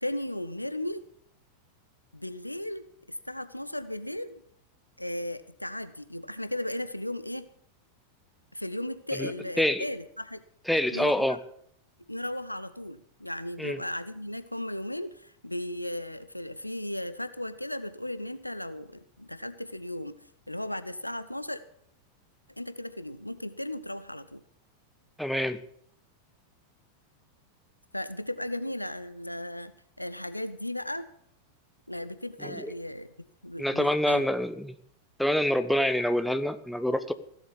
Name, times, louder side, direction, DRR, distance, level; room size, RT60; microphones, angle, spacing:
voice 1, 0.0-1.0 2.1-4.4 5.0-7.5 8.5-10.4 10.9-11.3 12.1-20.2 20.5-21.6 22.6-24.4 27.9-31.1 31.9-33.1 33.4-34.2, left 1 dB, 85° left, 12 dB, 0.8 m, -36 dB
voice 2, 10.7-11.4 13.6-13.8 25.2-25.6 32.4-32.7 33.6-34.7 35.2-37.1, left 1 dB, ahead, 10 dB, 1.0 m, -26 dB
16.5 x 7.6 x 8.3 m, 0.67 s
figure-of-eight pair, 90°, 0 cm